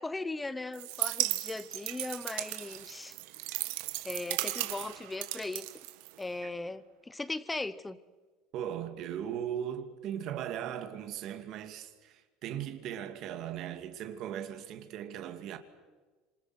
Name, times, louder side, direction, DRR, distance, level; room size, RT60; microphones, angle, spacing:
voice 1, 0.0-3.2 4.0-5.7 6.2-8.0, left 2 dB, 10° left, 0.9 m, -38 dB
sound 1, 0.7-6.4, right 18 dB, 75° right, 1.6 m, -36 dB
voice 2, 8.5-15.6, right 10 dB, 45° right, 2.2 m, -38 dB
27.0 x 27.0 x 6.1 m
cardioid pair, 170°, 0 cm